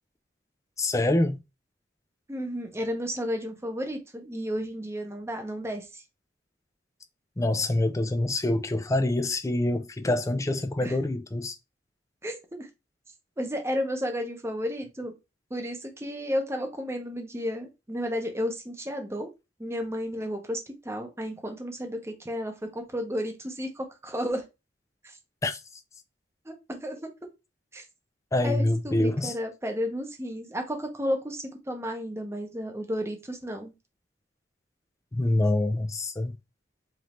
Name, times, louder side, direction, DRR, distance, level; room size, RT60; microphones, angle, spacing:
voice 1, 0.8-1.4 7.4-11.6 25.4-25.6 28.3-29.3 35.1-36.4, left 1 dB, 15° left, 0.4 m, -26 dB
voice 2, 2.3-6.0 10.8-10.9 12.2-12.7 13.4-15.1 15.5-19.3 19.6-24.4 25.0-25.2 26.4-27.1 27.7-27.8 28.4-33.7, equal, 15° right, 0.8 m, -32 dB
5.0 x 2.7 x 3.0 m
head